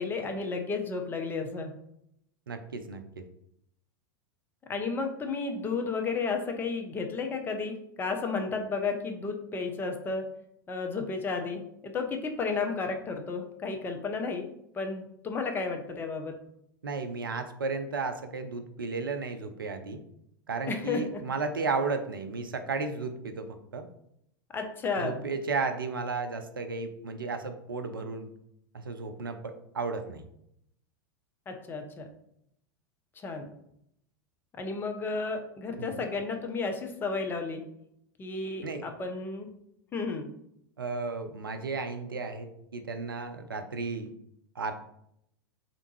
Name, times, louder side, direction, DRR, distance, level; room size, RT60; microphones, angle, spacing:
voice 1, 0.0-1.7 4.7-10.3 10.7-14.5 14.7-16.4 20.7-21.2 24.5-25.1 31.5-32.1 33.2-33.5 34.6-37.6 38.2-39.5 39.9-40.3, left 4 dB, 20° left, 4 dB, 0.5 m, -32 dB
voice 2, 2.5-3.2 16.8-20.0 20.5-23.9 25.0-28.3 28.7-30.2 35.8-36.0 38.6-38.9 40.8-44.1 44.6-44.7, right 4 dB, 75° right, 7 dB, 0.4 m, -34 dB
3.3 x 2.5 x 3.0 m, 0.74 s
figure-of-eight pair, 90°, 11 cm